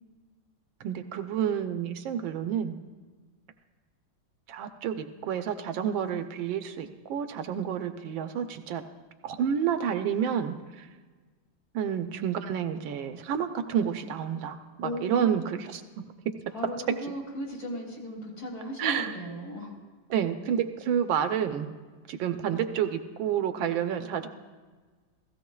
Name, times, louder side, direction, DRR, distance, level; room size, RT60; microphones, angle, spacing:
voice 1, 0.8-2.7 4.5-8.8 9.2-10.9 11.7-15.8 18.8-19.1 20.1-21.7 22.1-24.3, right 8 dB, 80° right, 8 dB, 1.4 m, -29 dB
voice 2, 14.8-15.4 16.5-19.7, equal, 50° left, -3 dB, 3.2 m, -36 dB
16.0 x 15.5 x 2.3 m, 1.4 s
omnidirectional pair, 2.1 m